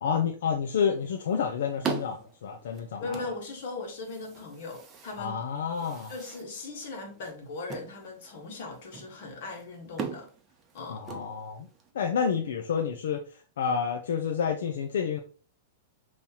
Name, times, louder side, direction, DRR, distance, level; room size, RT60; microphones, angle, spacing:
voice 1, 0.0-3.2 5.2-6.1 10.9-11.7 11.9-15.2, left 7 dB, 80° left, 0.6 m, -29 dB
sound 1, 0.8-11.9, right 6 dB, 20° right, 0.7 m, -42 dB
voice 2, 3.0-5.4 6.1-10.3 10.7-11.0, left 3 dB, 60° left, 1.7 m, -39 dB
5.5 x 3.0 x 3.0 m
supercardioid pair, 160°, 0 cm